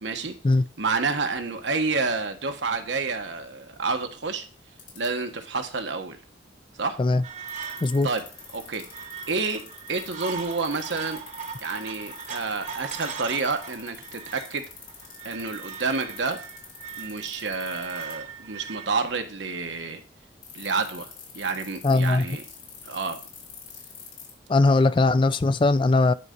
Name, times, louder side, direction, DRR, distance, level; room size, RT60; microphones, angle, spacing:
voice 1, 0.0-0.3 0.8-4.5 5.0-6.2 6.8-7.0 8.0-8.2 8.5-8.8 9.3-11.2 11.6-14.6 15.2-16.4 17.0-20.0 20.5-22.4 22.8-23.2, right 4 dB, 80° right, 1.2 m, -29 dB
sound 1, 4.8-5.1 7.5-18.1 20.4-24.3, left 10 dB, 85° left, 3.3 m, -44 dB
sound 2, 7.2-18.9, right 6 dB, 40° right, 1.0 m, -40 dB
voice 2, 21.8-22.3 24.5-26.1, left 3 dB, 30° left, 0.3 m, -20 dB
9.9 x 4.1 x 5.1 m
head